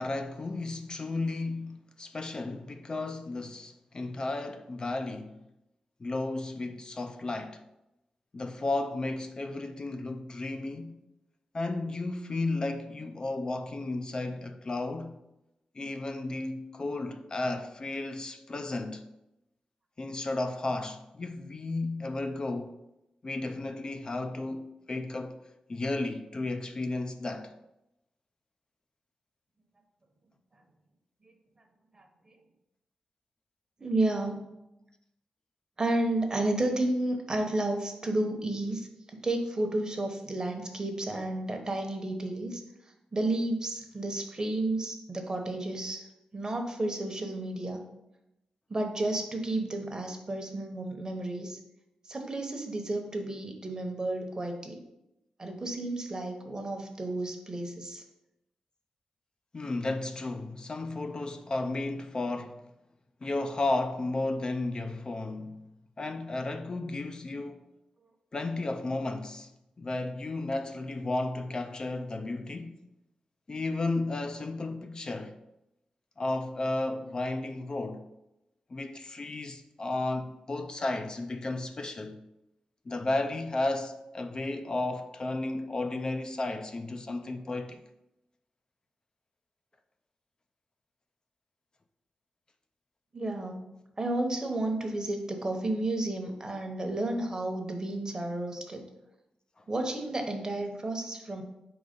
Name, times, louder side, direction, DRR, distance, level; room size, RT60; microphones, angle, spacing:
voice 1, 0.0-5.3 6.0-7.6 8.3-11.0 11.5-15.2 15.8-19.0 20.0-22.8 23.2-25.4 25.7-27.5 59.5-62.6 63.2-65.6 66.0-67.7 68.3-69.5 69.8-72.8 73.5-75.4 76.2-78.1 78.7-82.2 82.9-87.8 99.6-99.7, left 2 dB, 35° left, 0.4 m, -33 dB
voice 2, 33.8-34.6 35.8-42.6 43.1-46.1 46.3-47.8 48.7-51.6 52.0-54.8 55.4-58.0 93.1-93.7 94.0-98.8 99.7-101.4, right 2 dB, 30° right, 1.0 m, -32 dB
4.7 x 4.0 x 5.1 m
wide cardioid pair, 90°, 2 cm